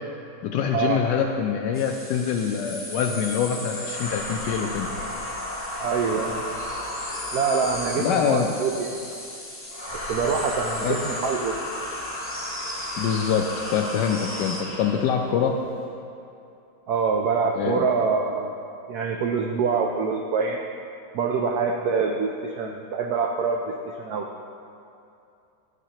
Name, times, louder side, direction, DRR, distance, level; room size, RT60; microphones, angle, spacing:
voice 1, 0.4-4.9 7.9-8.5 10.8-11.0 13.0-15.5 17.5-17.9, left 7 dB, 75° left, 3 dB, 1.0 m, -25 dB
sound 1, 1.7-14.6, left 1 dB, 10° left, 0.7 m, -38 dB
sound 2, 3.8-8.3 9.7-15.2, left 1 dB, 45° left, 1.8 m, -34 dB
voice 2, 5.8-6.4 7.3-8.9 10.1-11.5 16.9-18.5 18.9-20.6 21.1-24.3, right 5 dB, 85° right, 2 dB, 0.8 m, -25 dB
12.0 x 8.2 x 2.9 m, 2.6 s
omnidirectional pair, 2.2 m